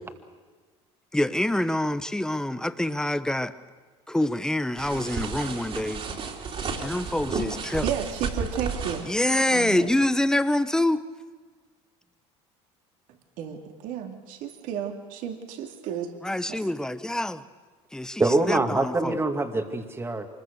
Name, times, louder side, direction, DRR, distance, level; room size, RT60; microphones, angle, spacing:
voice 1, 1.1-3.5 4.1-6.0 6.8-7.9 9.1-11.0 16.2-17.4 17.9-19.2, left 1 dB, 5° left, 12 dB, 1.1 m, -26 dB
sound 1, 4.8-9.1, right 5 dB, 40° right, 3.6 m, -32 dB
voice 2, 7.8-9.0 9.5-9.9 13.4-16.1 16.5-16.7, right 8 dB, 65° right, 4 dB, 2.6 m, -32 dB
voice 3, 18.2-20.3, right 2 dB, 15° right, 6 dB, 2.2 m, -24 dB
25.0 x 21.5 x 6.7 m, 1.4 s
hypercardioid pair, 85°, 15 cm